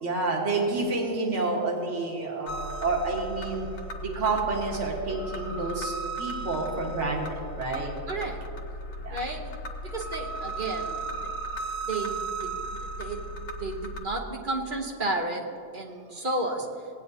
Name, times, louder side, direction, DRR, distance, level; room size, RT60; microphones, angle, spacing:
voice 1, 0.0-3.7 4.0-7.9 9.0-9.2, right 3 dB, 60° right, 0 dB, 1.8 m, -29 dB
sound 1, 2.5-14.0, right 2 dB, 80° left, 1.4 m, -36 dB
voice 2, 8.1-8.5 9.1-9.5 9.8-11.2 11.8-13.3 13.6-15.5 15.7-16.7, right 2 dB, 45° right, 2 dB, 1.0 m, -32 dB
17.5 x 9.3 x 2.7 m, 2.5 s
omnidirectional pair, 1.4 m